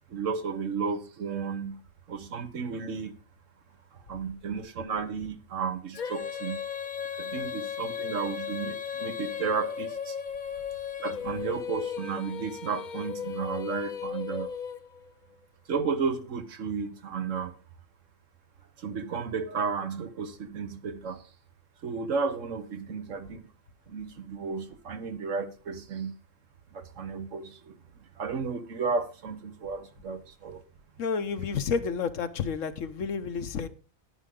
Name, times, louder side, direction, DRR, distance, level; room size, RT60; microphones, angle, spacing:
voice 1, 0.1-1.8 2.1-3.1 4.1-6.6 7.2-10.1 11.0-14.5 15.7-17.5 18.8-21.2 21.8-23.5 23.9-26.1 26.7-27.7 28.2-30.6 31.5-31.6, right 5 dB, 65° right, 1.4 m, -33 dB
Female singing, 5.9-15.1, left 8 dB, 45° left, 0.7 m, -36 dB
voice 2, 31.0-33.7, left 6 dB, 70° left, 1.2 m, -30 dB
11.0 x 9.8 x 3.8 m
omnidirectional pair, 1.4 m